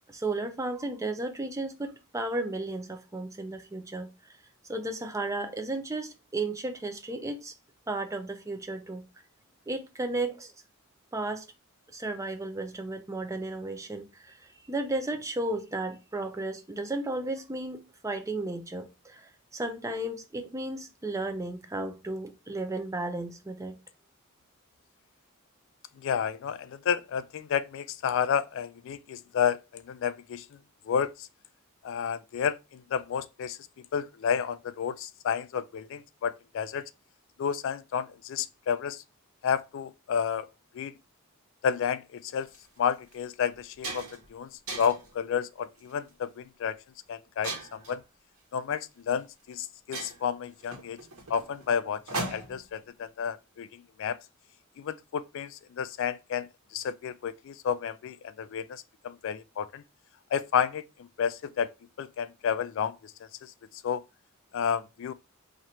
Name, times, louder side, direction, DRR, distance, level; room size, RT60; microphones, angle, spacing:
voice 1, 0.1-4.1 4.7-7.5 7.9-9.1 9.7-10.5 11.1-11.4 11.9-14.4 14.7-23.8, right 2 dB, 15° right, 0.4 m, -34 dB
voice 2, 26.0-30.4 30.9-31.1 31.8-33.6 33.9-36.9 37.4-39.0 39.4-40.5 40.7-40.9 41.6-42.5 42.8-44.1 44.3-44.5 44.8-46.8 47.1-47.5 47.9-48.0 48.5-51.0 51.3-52.0 52.3-53.7 54.0-54.2 54.8-55.5 55.8-56.5 56.7-59.8 60.3-60.8 61.2-61.7 62.0-63.1 63.8-64.0 64.5-65.1, left 7 dB, 60° left, 0.3 m, -31 dB
sound 1, 42.4-42.6 43.1-43.2 43.5-44.3 44.7-45.1 45.8-46.1 47.4-48.0 49.1-49.2 49.5-49.6 49.9-52.7, right 2 dB, 80° right, 1.2 m, -38 dB
3.0 x 2.5 x 4.2 m
head